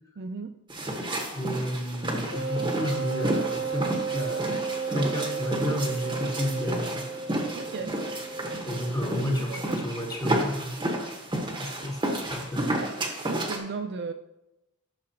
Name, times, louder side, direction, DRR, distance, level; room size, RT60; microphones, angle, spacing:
voice 1, 0.2-0.5 7.5-8.0 8.6-8.8 9.2-9.8 13.2-14.1, right 4 dB, 50° right, 7 dB, 0.4 m, -36 dB
sound 1, 0.7-13.6, right 1 dB, 20° right, 1.3 m, -31 dB
voice 2, 1.3-4.5 4.9-7.0 8.6-10.7 11.6-12.7, equal, 20° left, -1 dB, 1.6 m, -31 dB
Wind instrument woodwind instrument, 2.3-8.9, right 5 dB, 65° left, 1.4 m, -33 dB
12.0 x 6.6 x 2.9 m, 0.94 s
head